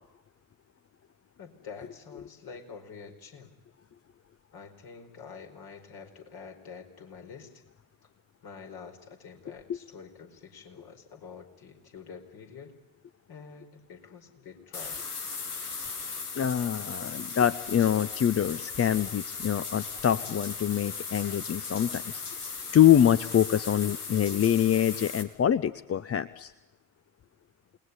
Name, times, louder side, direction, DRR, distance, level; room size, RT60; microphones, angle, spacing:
voice 1, 1.4-3.5 4.5-7.6 8.4-12.7 13.3-15.0, left 6 dB, 55° left, 4 dB, 4.8 m, -47 dB
sound 1, 14.7-25.2, left 5 dB, 90° left, 1.9 m, -37 dB
voice 2, 16.3-22.2 22.7-26.5, left 10 dB, 30° left, 14 dB, 0.9 m, -25 dB
28.5 x 20.0 x 9.8 m, 1.0 s
figure-of-eight pair, 50°, 44 cm